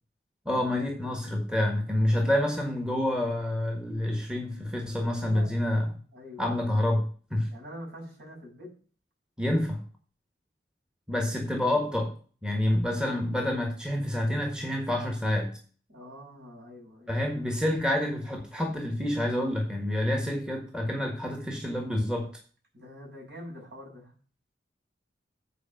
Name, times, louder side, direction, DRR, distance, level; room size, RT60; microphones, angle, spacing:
voice 1, 0.4-5.9 6.4-7.5 9.4-9.8 11.1-12.1 12.4-15.6 17.1-22.3, left 1 dB, 5° right, 2 dB, 1.4 m, -28 dB
voice 2, 5.0-5.6 6.1-6.6 7.5-8.7 11.1-11.4 15.9-17.1 22.7-24.1, left 1 dB, 60° right, -3 dB, 5.9 m, -45 dB
8.4 x 4.8 x 7.4 m, 0.41 s
head